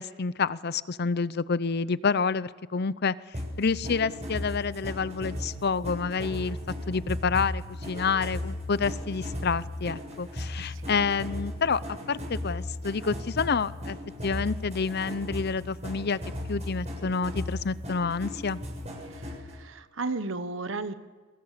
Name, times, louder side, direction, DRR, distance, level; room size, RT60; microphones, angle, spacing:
voice 1, 0.0-6.6 6.9-14.0 14.2-16.2 16.5-18.6, left 5 dB, 55° left, 17 dB, 0.7 m, -28 dB
sound 1, 3.3-19.5, left 1 dB, 35° right, 6.9 m, -36 dB
voice 2, 10.6-10.9 19.1-20.9, right 3 dB, 70° right, 11 dB, 1.2 m, -34 dB
28.5 x 22.5 x 6.8 m, 1.4 s
head